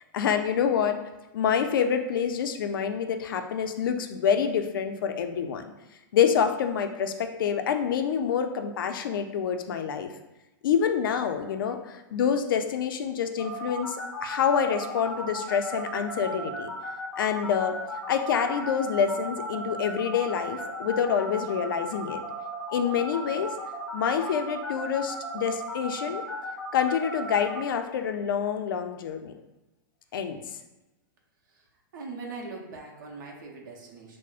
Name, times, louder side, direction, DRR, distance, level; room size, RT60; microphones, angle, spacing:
voice 1, 0.1-1.0 1.3-5.6 6.1-10.1 10.6-16.7 17.2-17.8 18.1-22.2 22.7-23.5 23.9-26.2 26.7-29.3 30.1-30.4, left 7 dB, 80° left, 6 dB, 0.4 m, -27 dB
sound 1, 13.4-27.6, left 1 dB, 10° left, 0.8 m, -36 dB
voice 2, 31.9-34.2, right 3 dB, 65° right, 0 dB, 0.8 m, -41 dB
5.9 x 2.1 x 2.4 m, 1.0 s
supercardioid pair, 150°, 11 cm